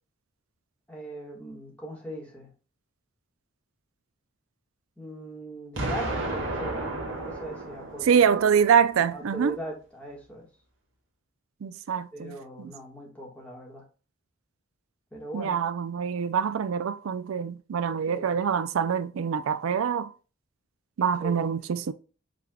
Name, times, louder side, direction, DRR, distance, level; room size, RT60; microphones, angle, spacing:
voice 1, 0.9-2.5 5.0-8.2 9.1-10.5 12.1-13.8 15.1-15.6 18.0-18.4 21.2-21.4, right 1 dB, 5° left, 1.5 m, -40 dB
Explosion, 5.8-8.7, right 2 dB, 65° right, 1.4 m, -33 dB
voice 2, 8.0-9.6 11.6-12.7 15.3-20.1 21.0-21.9, right 7 dB, 85° right, 0.4 m, -25 dB
5.2 x 3.3 x 2.2 m
head